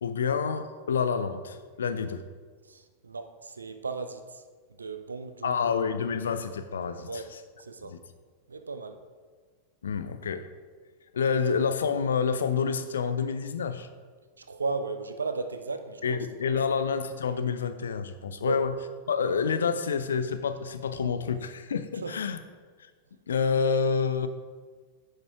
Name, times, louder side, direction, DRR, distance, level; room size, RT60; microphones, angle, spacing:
voice 1, 0.0-2.2 5.4-7.2 7.8-8.0 9.8-10.5 11.1-13.9 16.0-18.7 19.1-22.4 22.8-22.9 23.3-24.3, left 6 dB, 65° left, 10 dB, 0.6 m, -28 dB
voice 2, 2.6-4.4 4.7-5.7 7.1-7.3 7.6-8.0 8.5-9.0 14.4-16.3 18.4-18.7 22.0-22.2, right 4 dB, 75° right, 9 dB, 0.6 m, -35 dB
9.7 x 5.4 x 4.7 m, 1.5 s
figure-of-eight pair, 90°, 0 cm